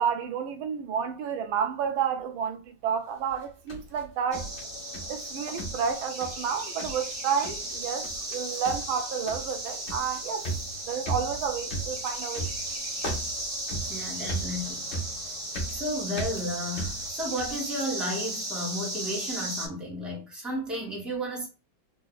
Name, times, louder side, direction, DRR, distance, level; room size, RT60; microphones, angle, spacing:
voice 1, 0.0-4.5 5.1-10.5 10.9-12.5, right 7 dB, 90° right, 1.5 m, -30 dB
sound 1, 3.3-5.3 5.6-6.5 6.8-7.1 7.4-7.8 8.0-8.4 8.6-17.6, right 2 dB, 40° left, 1.1 m, -37 dB
sound 2, 4.3-19.7, right 1 dB, 45° right, 2.0 m, -36 dB
voice 2, 13.9-14.8 15.7-21.5, equal, ahead, 1.3 m, -33 dB
3.9 x 2.7 x 2.2 m
omnidirectional pair, 2.1 m